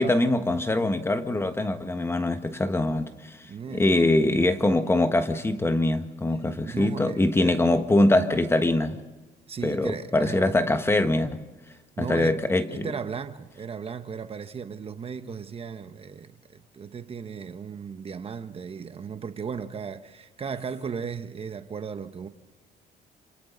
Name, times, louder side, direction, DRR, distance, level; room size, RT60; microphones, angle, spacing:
voice 1, 0.0-3.4 3.7-9.0 9.6-11.4 12.0-12.9, left 2 dB, 15° left, 1.4 m, -23 dB
voice 2, 3.5-3.9 6.6-7.7 9.5-10.5 12.0-12.4 12.7-22.3, right 6 dB, 35° right, 1.1 m, -36 dB
27.5 x 26.5 x 4.0 m
cardioid pair, 110°, 17 cm